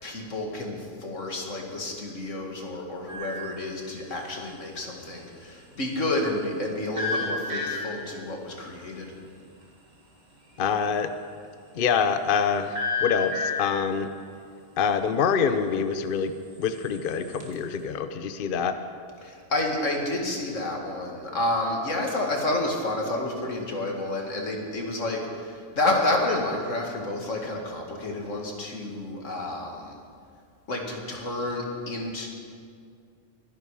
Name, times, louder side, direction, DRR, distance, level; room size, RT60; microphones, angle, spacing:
voice 1, 0.0-9.1 19.2-30.0 30.7-32.3, left 2 dB, 90° left, 1 dB, 2.5 m, -30 dB
sound 1, 3.1-3.6 7.0-8.2 12.7-13.9 16.6-17.6, left 3 dB, 35° right, 2.3 m, -30 dB
voice 2, 10.6-11.1 11.8-14.1 14.8-16.3 16.6-18.8, left 6 dB, 50° left, 10 dB, 0.8 m, -25 dB
23.5 x 11.0 x 4.9 m, 2.2 s
omnidirectional pair, 1.3 m